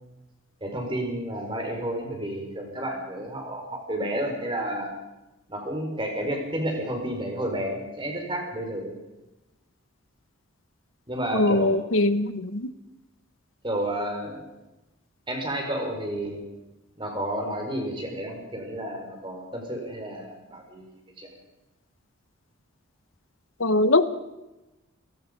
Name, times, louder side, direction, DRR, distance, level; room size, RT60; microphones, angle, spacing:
voice 1, 0.6-4.9 5.5-9.0 11.1-11.8 13.6-14.4 15.3-16.4 17.0-21.3, right 1 dB, 25° right, 2 dB, 5.0 m, -31 dB
voice 2, 11.3-12.7 23.6-24.1, left 2 dB, 75° left, 13 dB, 1.0 m, -22 dB
29.0 x 18.0 x 5.4 m, 1.0 s
head